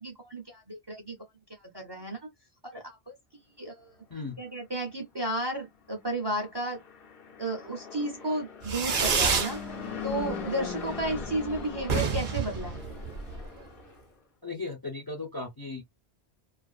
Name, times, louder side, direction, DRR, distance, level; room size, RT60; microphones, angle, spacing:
voice 1, 0.0-1.2 1.7-2.2 2.6-3.1 3.6-3.9 4.4-6.8 7.4-9.6 10.0-12.8, right 1 dB, 30° right, 0.5 m, -33 dB
Fixed-wing aircraft airplane, 6.6-14.0, left 6 dB, 60° left, 0.9 m, -40 dB
Fireworks, 8.6-9.6 9.9-10.5 10.8-10.9 11.1-11.2 11.5-11.6 11.8-13.4, right 5 dB, 55° right, 0.8 m, -28 dB
voice 2, 14.4-15.8, left 3 dB, 25° left, 0.5 m, -36 dB
2.5 x 2.4 x 2.4 m
omnidirectional pair, 1.1 m